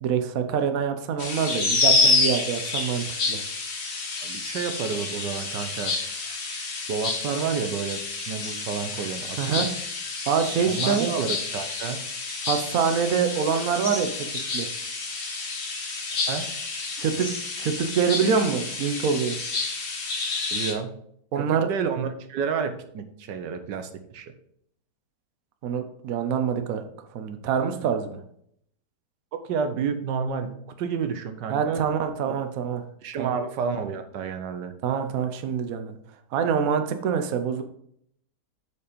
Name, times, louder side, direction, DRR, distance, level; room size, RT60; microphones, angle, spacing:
voice 1, 0.0-3.4 9.4-9.7 10.3-11.1 12.5-14.1 14.5-14.7 17.0-17.3 17.6-19.4 21.3-21.7 25.6-26.8 27.1-28.2 31.5-32.8 33.2-33.3 34.8-36.0 36.3-37.6, right 7 dB, 60° right, 7 dB, 1.1 m, -25 dB
sound 1, 1.2-20.7, left 3 dB, 65° left, 2.0 m, -29 dB
voice 2, 4.2-6.0 6.9-9.7 10.7-12.0 16.3-16.5 20.5-21.0 21.4-24.3 29.3-31.8 32.3-32.4 33.0-34.7, right 6 dB, 85° right, 8 dB, 1.5 m, -30 dB
7.0 x 5.1 x 5.1 m, 0.69 s
omnidirectional pair, 1.8 m